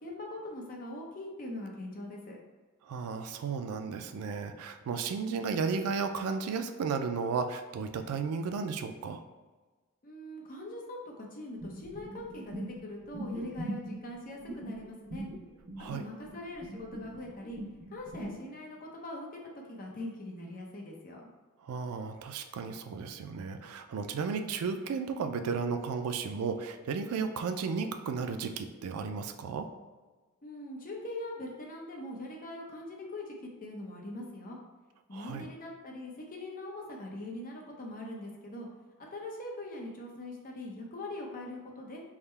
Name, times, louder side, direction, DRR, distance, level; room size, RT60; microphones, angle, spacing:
voice 1, 0.0-2.4 10.0-15.3 15.8-17.6 17.9-21.3 30.4-34.6 35.1-38.7 39.0-42.0, left 1 dB, 40° left, -1 dB, 0.7 m, -42 dB
voice 2, 2.8-9.2 15.8-16.1 21.6-29.7 35.1-35.5, right 5 dB, 85° right, 8 dB, 0.3 m, -34 dB
sound 1, 11.6-18.4, right 1 dB, 50° right, 0.9 m, -41 dB
3.5 x 2.1 x 4.3 m, 1.3 s
head